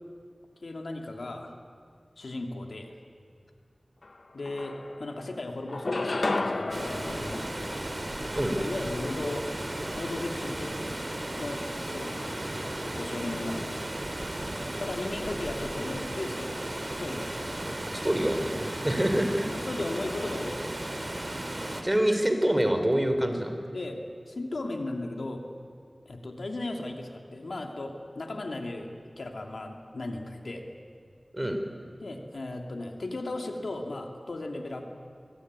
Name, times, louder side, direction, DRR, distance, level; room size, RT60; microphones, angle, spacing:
voice 1, 0.6-1.5 2.2-2.9 4.3-7.5 8.5-9.5 9.9-10.8 11.4-12.4 12.8-13.8 14.8-16.6 16.9-17.4 19.5-21.2 23.7-24.0 24.3-25.4 26.1-28.9 29.2-30.7 32.0-34.8, left 2 dB, 90° left, 3 dB, 2.6 m, -36 dB
sound 1, 4.0-4.1 4.4-5.2 5.7-8.3, left 2 dB, 70° left, 1.3 m, -32 dB
Water, 6.7-21.8, right 1 dB, 40° right, 2.8 m, -35 dB
voice 2, 17.9-19.4 21.8-23.5 31.3-31.6, right 1 dB, 20° right, 6 dB, 3.6 m, -26 dB
23.5 x 22.5 x 9.7 m, 2.2 s
wide cardioid pair, 55°, 0 cm